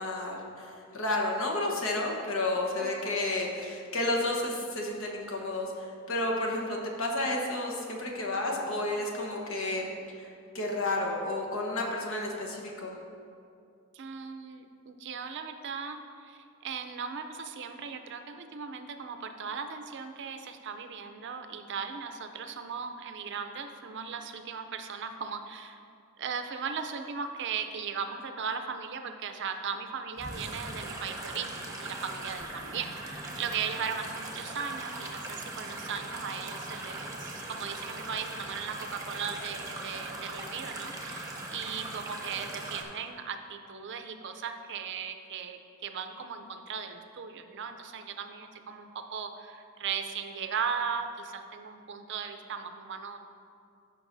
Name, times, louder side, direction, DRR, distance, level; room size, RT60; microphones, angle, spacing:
voice 1, 0.0-13.0, left 2 dB, 65° left, 0 dB, 1.2 m, -31 dB
voice 2, 13.9-25.8 26.2-32.9 33.4-53.2, right 6 dB, 55° right, 7 dB, 0.5 m, -37 dB
sound 1, 30.2-42.8, right 2 dB, 15° right, 1.0 m, -40 dB
14.0 x 5.8 x 2.6 m, 2.5 s
head